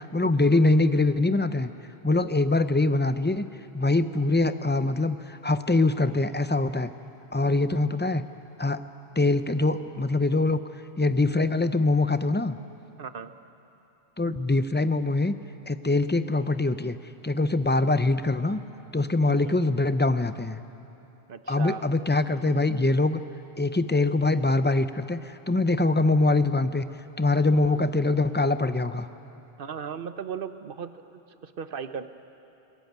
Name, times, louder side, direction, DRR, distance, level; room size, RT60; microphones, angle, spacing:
voice 1, 0.0-1.7 2.0-3.5 3.7-6.9 7.3-8.2 8.6-8.8 9.2-10.6 11.0-12.6 14.2-15.4 15.7-17.0 17.2-18.6 18.9-20.6 21.5-23.2 23.6-26.8 27.2-29.1, left 2 dB, 15° left, 11 dB, 0.4 m, -23 dB
voice 2, 13.0-13.4 19.2-19.6 21.3-21.9 29.6-32.1, right 6 dB, 60° right, 11 dB, 1.0 m, -37 dB
21.5 x 20.0 x 9.4 m, 2.9 s
omnidirectional pair, 1.1 m